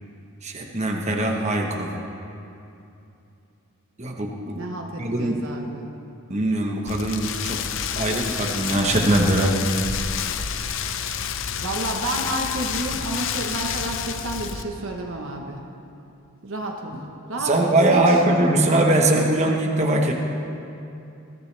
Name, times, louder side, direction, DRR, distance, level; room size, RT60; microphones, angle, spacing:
voice 1, 0.4-1.9 4.0-4.6 5.0-5.4 6.3-7.6 8.0-9.6 17.4-20.1, right 1 dB, 30° right, 0 dB, 1.2 m, -21 dB
voice 2, 4.5-5.9 11.6-15.7 16.4-17.0 17.3-18.2, right 1 dB, 60° right, 0 dB, 1.2 m, -30 dB
Rain, 6.9-14.6, left 7 dB, 60° left, 0.7 m, -29 dB
21.5 x 15.0 x 3.4 m, 2.7 s
head